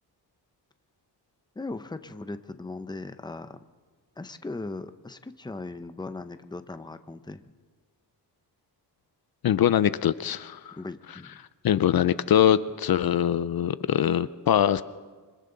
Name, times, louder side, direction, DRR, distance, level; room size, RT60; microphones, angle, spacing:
voice 1, 1.5-3.6 4.2-7.5 10.8-11.4, left 3 dB, 10° left, 10 dB, 0.8 m, -38 dB
voice 2, 9.4-10.8 11.6-14.8, left 10 dB, 60° left, 15 dB, 0.6 m, -23 dB
26.5 x 25.0 x 4.0 m, 1.4 s
wide cardioid pair, 115°, 41 cm